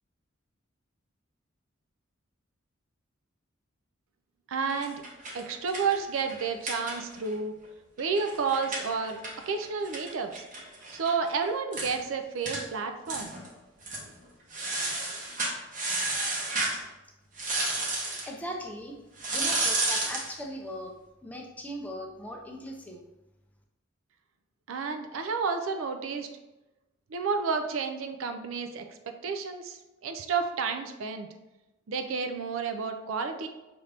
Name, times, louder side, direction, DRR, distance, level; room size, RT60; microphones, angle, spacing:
voice 1, 4.5-5.0 5.3-7.5 8.0-9.2 9.5-10.4 10.9-13.3 24.7-26.3 27.1-28.8 29.2-31.3 31.9-33.5, right 5 dB, 85° right, 6 dB, 0.4 m, -31 dB
sound 1, 4.7-7.3 7.6-7.7 8.0-11.1 11.4-11.5 11.7-12.0 12.5-12.6 13.1-13.5 13.8-14.1 14.5-16.8 17.4-18.3 19.2-20.3, right 2 dB, 40° right, 0.9 m, -32 dB
voice 2, 18.2-19.0 19.3-20.9 21.2-23.0, equal, 10° left, 1 dB, 0.5 m, -39 dB
5.6 x 2.6 x 3.3 m, 1.0 s
head